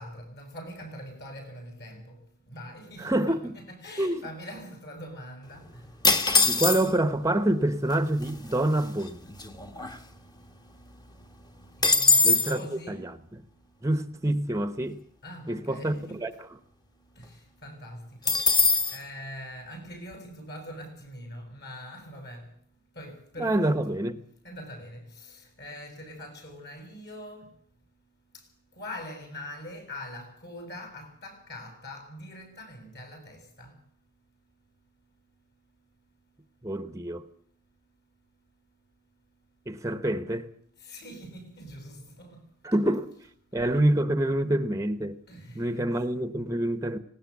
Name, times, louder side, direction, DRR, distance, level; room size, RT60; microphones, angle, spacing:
voice 1, 0.0-2.2 2.5-3.4 3.7-5.9 11.8-13.2 15.2-16.2 17.2-22.5 22.9-23.9 24.4-27.5 28.3-28.4 28.7-33.8 40.8-42.4 45.3-45.8, equal, 50° left, 7.8 m, -43 dB
voice 2, 3.0-3.6 4.0-4.2 6.4-9.2 12.2-13.4 13.8-15.0 15.5-16.6 23.4-24.2 36.6-37.3 39.7-40.5 42.6-43.1 43.5-45.2 45.5-47.0, right 1 dB, 15° right, 1.0 m, -27 dB
sound 1, 6.0-7.1 7.9-8.0 8.2-8.6 9.0-10.5 10.8-10.9 11.2-12.6 18.3-19.0, left 3 dB, 20° left, 1.4 m, -22 dB
19.0 x 19.0 x 8.3 m
head